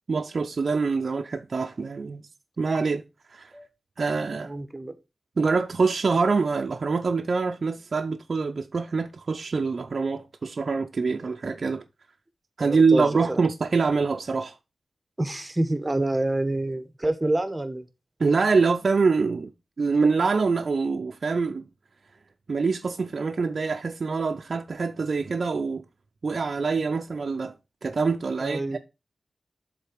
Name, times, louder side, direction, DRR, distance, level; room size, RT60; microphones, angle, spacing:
voice 1, 0.1-2.2 2.6-3.0 3.3-3.5 4.0-4.5 5.4-11.8 12.6-14.5 18.2-19.5 19.8-21.6 22.5-25.8 26.2-27.5 27.8-28.8, right 4 dB, 60° right, 0.5 m, -25 dB
voice 2, 4.5-4.9 12.6-13.4 15.2-17.8 28.4-28.8, right 1 dB, 20° right, 1.1 m, -27 dB
7.4 x 4.0 x 5.0 m
wide cardioid pair, 85°, 0 cm